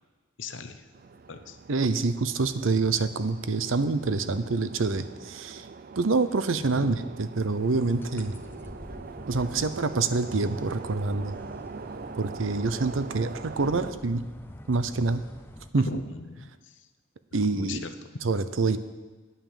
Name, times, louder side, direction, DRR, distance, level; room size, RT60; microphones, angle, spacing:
voice 1, 0.4-0.9 1.3-1.6 6.7-7.0 13.6-13.9 15.8-16.9 17.4-18.3, left 3 dB, 65° left, 9 dB, 0.9 m, -38 dB
sound 1, 0.9-13.9, right 4 dB, 45° right, 0.4 m, -43 dB
voice 2, 1.7-5.6 6.0-8.4 9.3-11.4 12.2-14.2 14.7-15.2 15.7-15.8 17.3-17.8 18.2-18.8, right 3 dB, 75° right, 12 dB, 0.7 m, -26 dB
sound 2, 7.7-15.7, left 1 dB, 10° left, 0.7 m, -45 dB
9.7 x 9.0 x 7.0 m, 1.3 s
head